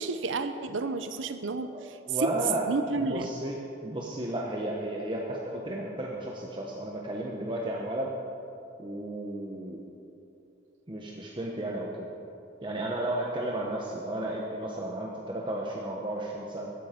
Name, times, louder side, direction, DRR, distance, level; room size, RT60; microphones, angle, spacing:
voice 1, 0.0-2.3 2.7-3.3, right 3 dB, 80° right, 9 dB, 0.6 m, -31 dB
voice 2, 1.7-2.7 3.0-8.1 8.8-9.8 10.9-12.1 12.6-16.7, right 1 dB, 25° right, -2 dB, 1.0 m, -33 dB
13.5 x 12.0 x 5.2 m, 2.7 s
head